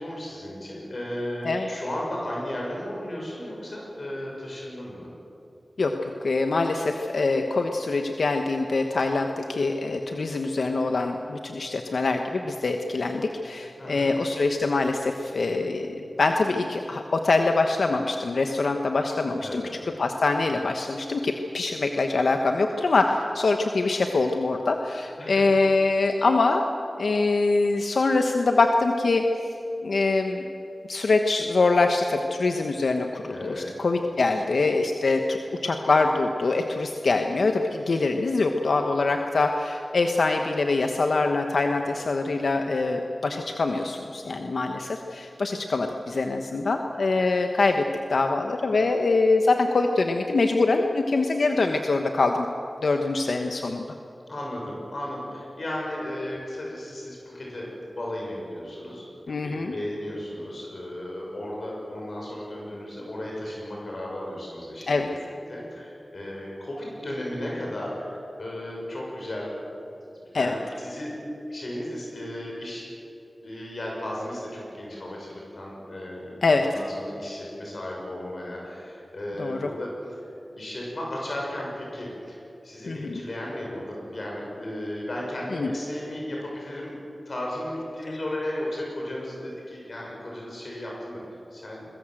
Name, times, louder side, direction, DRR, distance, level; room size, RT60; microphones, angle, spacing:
voice 1, 0.0-5.1 13.8-14.2 19.4-19.7 25.2-25.4 33.3-33.7 41.8-42.1 54.3-65.1 65.5-69.5 70.0-71.2 71.5-72.9 73.4-80.2 80.6-86.9 87.2-91.9, left 1 dB, 60° left, -2 dB, 6.7 m, -35 dB
voice 2, 5.8-19.6 20.0-26.6 27.0-29.3 29.8-30.5 30.9-52.5 52.8-53.9 59.3-59.7 64.9-65.1 70.3-70.5 76.4-76.7 79.4-79.7 82.9-83.2 85.5-85.7 88.1-88.2, left 3 dB, 80° left, 4 dB, 1.2 m, -24 dB
22.5 x 21.0 x 7.8 m, 2.8 s
wide cardioid pair, 65°, 0 cm